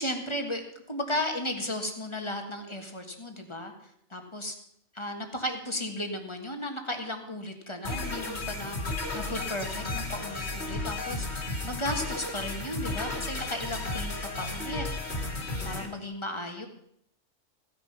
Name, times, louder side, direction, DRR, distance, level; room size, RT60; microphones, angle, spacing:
voice 1, 0.0-3.7 4.1-4.5 4.9-14.8 15.6-16.7, left 1 dB, 20° left, 4 dB, 1.6 m, -35 dB
sound 1, 7.8-15.9, left 2 dB, 55° left, 2.5 m, -33 dB
15.5 x 9.9 x 5.6 m, 0.72 s
omnidirectional pair, 1.4 m